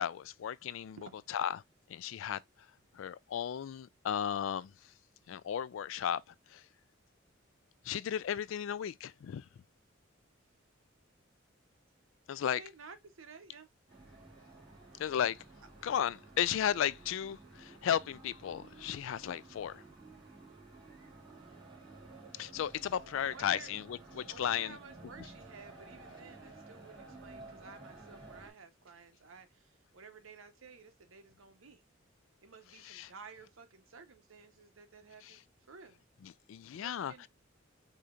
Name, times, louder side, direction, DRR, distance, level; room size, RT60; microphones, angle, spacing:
voice 1, 0.0-1.0 1.3-1.6 1.9-2.4 2.9-4.7 5.3-6.6 7.8-9.5 12.3-12.6 15.0-15.4 15.8-19.8 22.3-24.8 32.8-33.1 35.2-35.4 36.2-37.3, left 9 dB, 70° left, 0.3 m, -35 dB
voice 2, 12.4-13.7 23.2-23.7 24.3-31.8 32.4-36.0 36.7-37.3, right 5 dB, 90° right, 0.9 m, -53 dB
sound 1, 13.9-28.5, right 2 dB, 25° right, 2.0 m, -53 dB
4.9 x 2.8 x 2.4 m
head